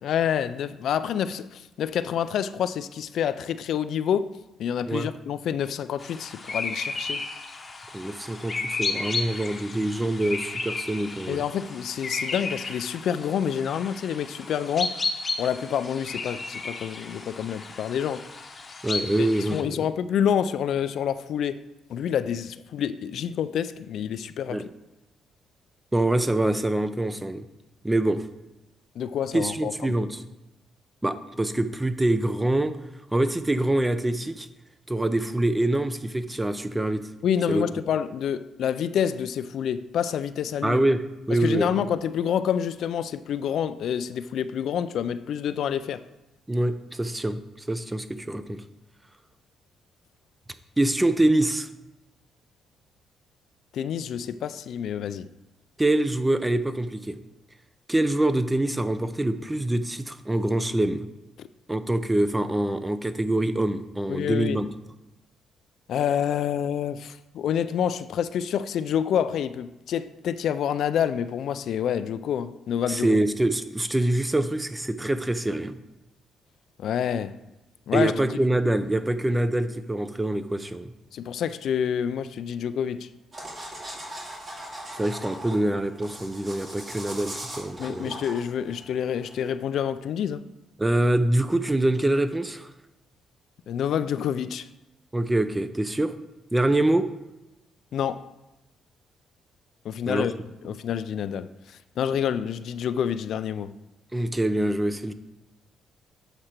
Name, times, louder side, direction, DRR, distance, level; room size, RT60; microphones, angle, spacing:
voice 1, 0.0-4.2 4.6-7.2 11.3-15.0 15.4-18.2 19.2-21.6 21.9-24.7 29.0-29.7 37.2-40.8 41.3-46.0 53.7-55.3 61.4-61.5 64.1-64.6 65.9-73.2 76.8-77.4 77.9-78.1 81.1-83.1 87.8-90.4 93.7-94.7 97.9-98.3 99.8-100.3 100.6-103.7, left 8 dB, 70° left, 0.3 m, -28 dB
sound 1, 6.0-19.6, left 3 dB, 30° left, 0.9 m, -34 dB
voice 2, 7.9-11.4 18.8-19.8 24.5-24.7 25.9-27.4 27.8-28.3 29.3-30.2 31.0-32.7 33.1-34.5 34.9-37.0 37.5-37.6 40.6-41.8 46.5-48.6 50.8-51.7 55.8-57.2 57.9-61.1 61.7-64.7 72.9-75.8 77.9-80.9 84.9-88.1 90.8-92.7 95.1-96.1 96.5-97.1 100.1-100.3 104.1-105.1, right 1 dB, 15° right, 0.5 m, -25 dB
sound 2, 83.3-89.5, right 1 dB, 35° right, 2.3 m, -40 dB
7.8 x 4.9 x 4.4 m
cardioid pair, 90°, 0 cm